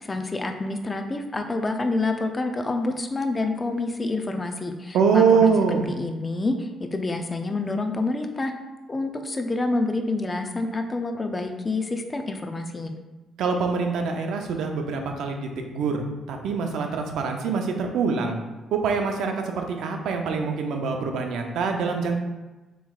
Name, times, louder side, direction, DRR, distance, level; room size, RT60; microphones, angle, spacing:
voice 1, 0.0-8.5 8.9-13.0, left 2 dB, 25° left, 5 dB, 0.5 m, -28 dB
voice 2, 4.9-5.9 13.4-18.4 18.7-22.1, right 5 dB, 80° right, 4 dB, 0.6 m, -24 dB
7.0 x 3.1 x 2.4 m, 1.1 s
cardioid pair, 90°, 0 cm